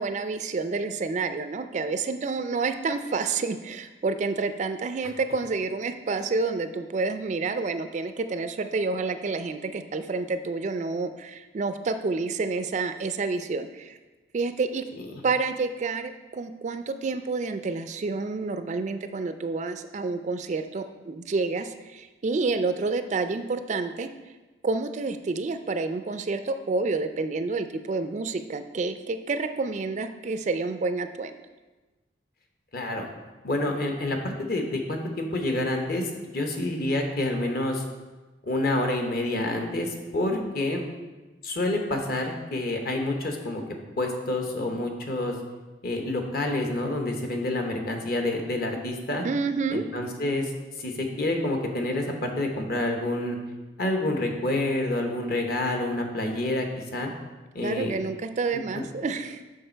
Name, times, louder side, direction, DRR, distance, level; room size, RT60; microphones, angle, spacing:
voice 1, 0.0-14.0 14.3-14.8 15.2-24.1 24.6-31.3 49.2-49.8 57.6-59.4, right 4 dB, 40° right, 9 dB, 0.3 m, -29 dB
voice 2, 32.7-33.1 33.4-37.8 38.4-40.8 41.4-43.6 44.0-45.4 45.8-49.2 49.7-50.5 50.8-53.4 53.8-57.1 57.5-57.9 58.7-58.8, left 1 dB, 50° left, 3 dB, 1.0 m, -28 dB
6.5 x 5.8 x 4.4 m, 1.2 s
head